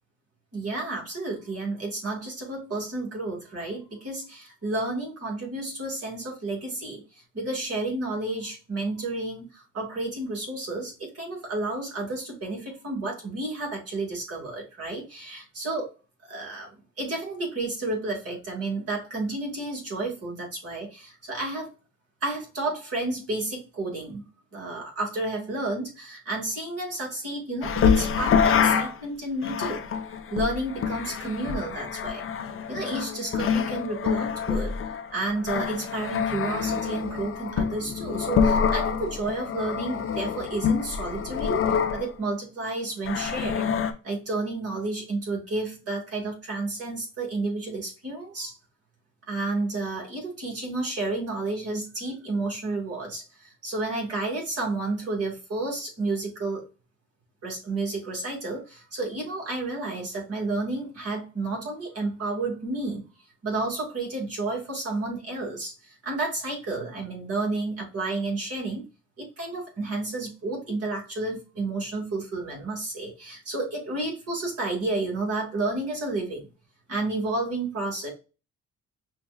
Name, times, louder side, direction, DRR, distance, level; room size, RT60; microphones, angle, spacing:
voice 1, 0.5-7.0 7.3-15.9 16.2-21.7 22.2-29.9 30.3-32.3 32.7-34.7 35.1-43.7 44.0-48.5 49.3-56.7 57.4-63.1 63.4-68.9 69.2-76.4 76.9-78.1, right 2 dB, 50° right, -1 dB, 2.3 m, -31 dB
sound 1, 27.6-28.9 29.4-42.1 43.1-43.9, left 7 dB, 45° left, 0.7 m, -26 dB
5.6 x 2.6 x 2.2 m, 0.32 s
cardioid pair, 90°, 30 cm